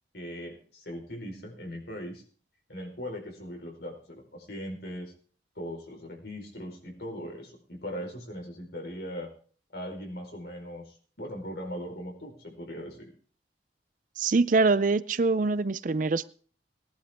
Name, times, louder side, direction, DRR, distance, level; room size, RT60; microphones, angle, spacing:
voice 1, 0.1-2.2 2.7-5.1 5.5-9.3 9.7-13.1, equal, 65° left, 1 dB, 4.8 m, -39 dB
voice 2, 14.2-16.2, right 3 dB, 45° right, 16 dB, 0.5 m, -24 dB
18.5 x 11.5 x 3.7 m, 0.42 s
head